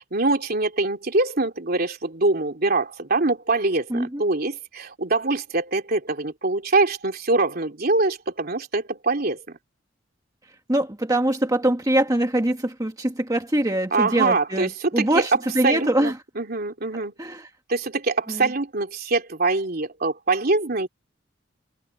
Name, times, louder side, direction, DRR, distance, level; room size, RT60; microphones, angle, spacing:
voice 1, 0.0-9.4 13.9-15.2 15.6-17.1 17.7-20.9, right 3 dB, 55° right, 3.2 m, -24 dB
voice 2, 3.9-4.2 10.7-16.1 17.2-17.4 18.3-18.5, right 1 dB, 20° right, 1.5 m, -23 dB
head